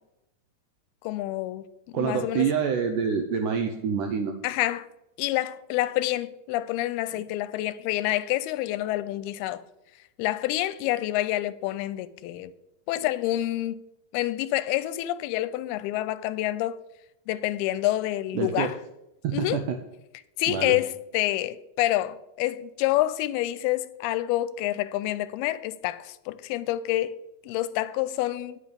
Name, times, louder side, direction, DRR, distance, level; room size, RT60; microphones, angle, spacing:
voice 1, 1.0-1.7 1.9-2.5 4.4-4.9 5.2-9.6 10.2-12.5 12.9-13.8 14.1-16.8 17.3-18.8 19.3-19.6 20.4-27.2 27.4-28.6, left 15 dB, 85° left, 2.4 m, -27 dB
voice 2, 1.9-4.3 7.1-7.2 18.3-18.7 19.2-19.8 20.5-20.8, right 7 dB, 85° right, 1.9 m, -27 dB
10.5 x 8.7 x 5.2 m
omnidirectional pair, 4.5 m